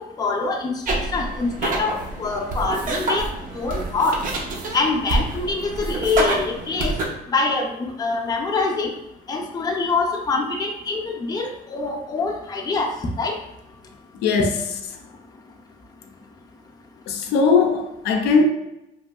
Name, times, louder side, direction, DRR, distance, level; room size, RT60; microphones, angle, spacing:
voice 1, 0.0-3.3 3.5-4.2 4.7-7.0 7.3-8.9 9.3-12.9 13.2-13.4, left 3 dB, 25° left, 2 dB, 0.5 m, -25 dB
sound 1, 0.9-7.0, right 2 dB, 50° right, 0.6 m, -27 dB
voice 2, 14.2-14.5 17.1-18.4, left 5 dB, 80° left, 5 dB, 0.4 m, -19 dB
3.0 x 2.5 x 2.3 m, 0.89 s
cardioid pair, 110°, 17 cm